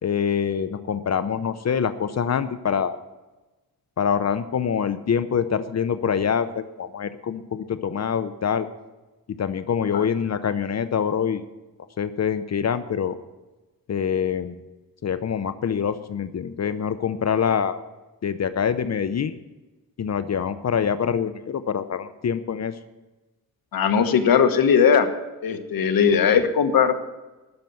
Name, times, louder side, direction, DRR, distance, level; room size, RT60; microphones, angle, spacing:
voice 1, 0.0-3.0 4.0-8.7 9.4-11.4 12.0-13.1 13.9-14.6 15.0-17.8 18.2-19.3 20.0-22.7, left 7 dB, 45° left, 12 dB, 0.7 m, -25 dB
voice 2, 23.7-25.1 25.4-27.0, left 7 dB, 70° left, 7 dB, 1.3 m, -19 dB
12.0 x 6.8 x 9.3 m, 1.1 s
cardioid pair, 100°, 36 cm